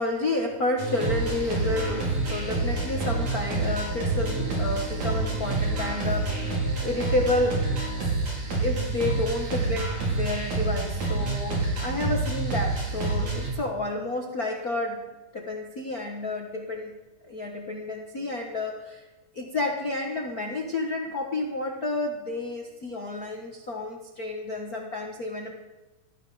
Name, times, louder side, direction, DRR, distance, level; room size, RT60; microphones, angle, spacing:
voice 1, 0.0-7.7 8.6-17.0 17.2-19.0 19.3-25.5, left 2 dB, 50° left, 1 dB, 1.1 m, -30 dB
sound 1, 0.8-13.5, right 3 dB, 65° right, 6.2 m, -28 dB
17.5 x 14.0 x 5.0 m, 1.1 s
omnidirectional pair, 3.7 m